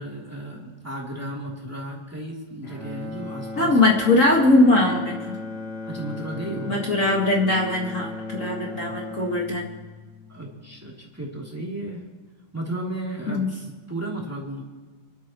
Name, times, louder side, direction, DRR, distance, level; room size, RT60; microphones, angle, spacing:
voice 1, 0.0-4.0 5.8-6.8 10.3-12.0 12.5-14.6, right 1 dB, 5° right, -3 dB, 2.4 m, -34 dB
Bowed string instrument, 2.6-10.9, left 2 dB, 75° left, 6.4 m, -37 dB
voice 2, 3.5-5.4 6.7-9.7 13.3-13.5, left 2 dB, 45° left, -1 dB, 1.0 m, -20 dB
26.0 x 12.5 x 3.1 m, 1.4 s
omnidirectional pair, 4.2 m